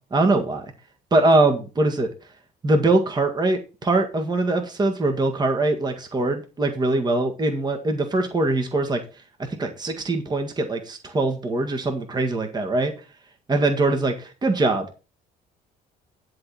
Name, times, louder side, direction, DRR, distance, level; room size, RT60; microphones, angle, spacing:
voice 1, 0.1-0.7 1.1-2.1 2.6-9.0 9.6-12.9 13.5-14.9, right 2 dB, 25° right, 4 dB, 1.8 m, -22 dB
11.5 x 3.9 x 7.3 m, 0.32 s
cardioid pair, 110°, 17 cm